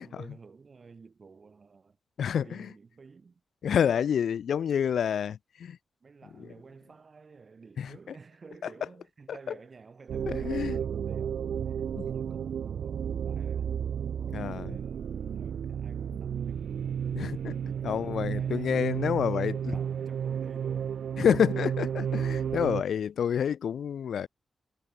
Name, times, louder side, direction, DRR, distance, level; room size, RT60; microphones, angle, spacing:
voice 1, 0.0-2.0 2.4-3.4 6.0-15.1 15.3-16.7 17.6-19.0 19.3-21.0, right 4 dB, 35° right, 3.6 m, -52 dB
voice 2, 2.2-2.7 3.6-5.8 7.8-7.9 10.3-10.8 12.0-12.1 14.3-14.7 17.1-17.6 17.8-19.7 21.2-24.3, left 8 dB, 80° left, 0.6 m, -28 dB
sound 1, 10.1-22.8, right 8 dB, 75° right, 0.3 m, -32 dB
wide cardioid pair, 170°, 0 cm